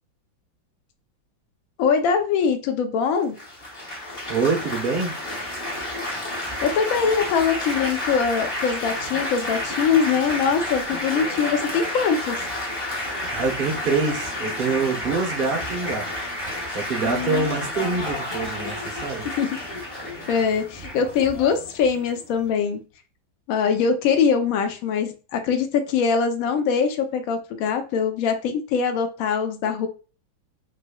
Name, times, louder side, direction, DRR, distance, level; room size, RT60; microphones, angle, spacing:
voice 1, 1.8-3.4 6.6-12.4 17.0-17.5 19.4-19.5 20.3-22.8 23.5-29.9, left 6 dB, 80° left, 0.8 m, -22 dB
Laughter / Applause / Chatter, 3.4-22.5, left 1 dB, 20° left, 1.1 m, -30 dB
voice 2, 4.3-5.1 13.3-16.1 16.7-19.3, right 4 dB, 75° right, 0.4 m, -25 dB
3.8 x 3.2 x 2.2 m
omnidirectional pair, 2.1 m